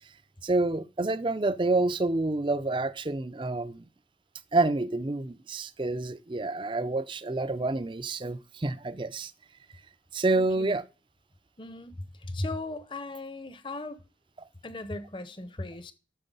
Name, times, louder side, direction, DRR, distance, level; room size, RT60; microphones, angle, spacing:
voice 1, 0.4-3.9 4.5-9.3 10.1-10.8, right 2 dB, 25° right, 0.5 m, -28 dB
voice 2, 10.3-10.7 11.6-14.0 14.6-15.9, left 2 dB, 25° left, 0.8 m, -37 dB
9.1 x 6.7 x 5.4 m
head